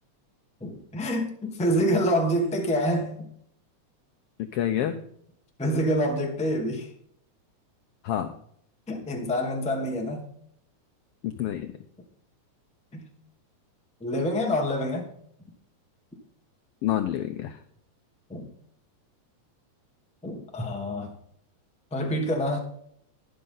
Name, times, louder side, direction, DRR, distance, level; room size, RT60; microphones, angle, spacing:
voice 1, 0.6-3.3 5.6-6.9 8.9-10.3 12.9-13.1 14.0-15.1 18.3-18.4 20.2-21.1 21.9-22.6, equal, 5° left, 2 dB, 0.7 m, -27 dB
voice 2, 4.4-5.0 8.0-8.3 11.2-11.7 16.8-17.6, left 11 dB, 85° left, 8 dB, 1.3 m, -28 dB
12.0 x 10.5 x 3.9 m, 0.67 s
omnidirectional pair, 3.4 m